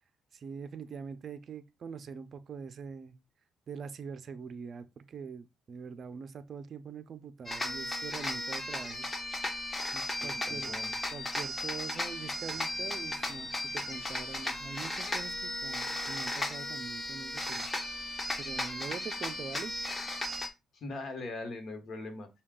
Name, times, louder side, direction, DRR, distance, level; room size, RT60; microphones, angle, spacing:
voice 1, 0.3-3.2 3.7-9.1 9.9-10.7 11.1-17.7 18.4-19.7, right 6 dB, 45° right, 0.5 m, -43 dB
sound 1, 7.5-20.5, left 1 dB, 20° left, 0.7 m, -36 dB
voice 2, 10.1-10.9 20.4-22.3, left 2 dB, 50° left, 1.0 m, -41 dB
5.6 x 2.3 x 3.7 m
cardioid pair, 125°, 0 cm